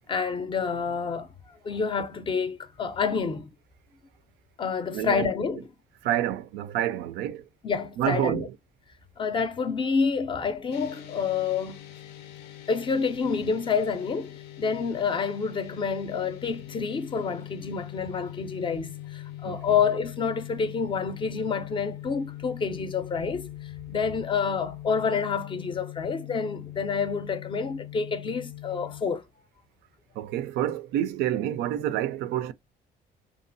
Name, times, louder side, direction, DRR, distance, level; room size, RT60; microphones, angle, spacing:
voice 1, 0.1-1.3 1.6-3.5 4.6-5.7 7.6-8.4 9.2-11.8 12.7-23.5 23.9-29.2, left 5 dB, 30° left, 0.4 m, -28 dB
voice 2, 4.9-5.3 6.0-7.5 8.0-8.6 19.4-19.8 30.1-32.5, right 12 dB, 80° right, 0.4 m, -28 dB
sound 1, 10.7-29.0, left 14 dB, 85° left, 0.5 m, -42 dB
2.7 x 2.2 x 2.5 m
cardioid pair, 110°, 17 cm